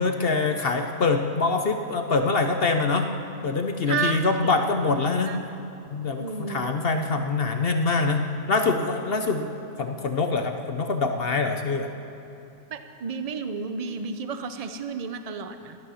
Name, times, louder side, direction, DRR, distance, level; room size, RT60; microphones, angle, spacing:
voice 1, 0.0-3.1 3.4-5.3 5.9-9.5 9.8-11.9, left 3 dB, 50° left, 5 dB, 0.7 m, -24 dB
voice 2, 3.9-4.5 5.3-5.4 6.2-6.7 12.7-15.8, right 5 dB, 50° right, 8 dB, 0.4 m, -32 dB
14.5 x 12.0 x 6.3 m, 2.9 s
omnidirectional pair, 1.7 m